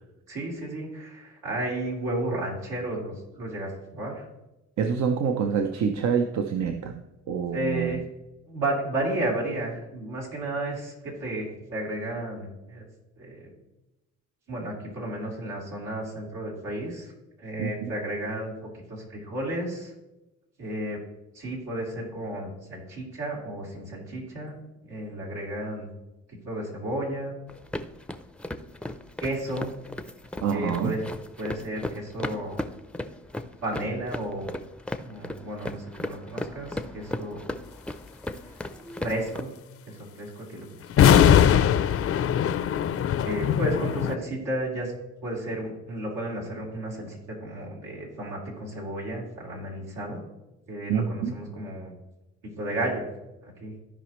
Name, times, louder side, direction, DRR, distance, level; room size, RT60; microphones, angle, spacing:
voice 1, 0.3-4.3 7.5-8.0 8.5-12.9 13.2-13.5 14.5-17.1 17.4-18.5 18.9-19.9 20.6-21.0 21.3-24.5 24.9-25.9 26.5-27.4 29.2-29.7 30.5-31.1 31.4-32.6 33.6-34.5 35.0-37.5 39.0-39.5 39.9-41.4 41.8-42.2 43.2-44.9 45.2-50.2 50.7-51.9 52.6-53.0 53.4-53.7, right 1 dB, 85° right, -3 dB, 3.5 m, -33 dB
voice 2, 4.8-7.0 7.3-8.0 17.6-17.9 30.4-31.0 50.9-51.4, right 6 dB, 65° right, 6 dB, 0.7 m, -26 dB
sound 1, 27.5-39.4, left 1 dB, 5° left, 0.5 m, -37 dB
sound 2, 40.9-44.1, left 9 dB, 50° left, 0.5 m, -20 dB
15.0 x 5.1 x 3.1 m, 0.99 s
cardioid pair, 90°, 30 cm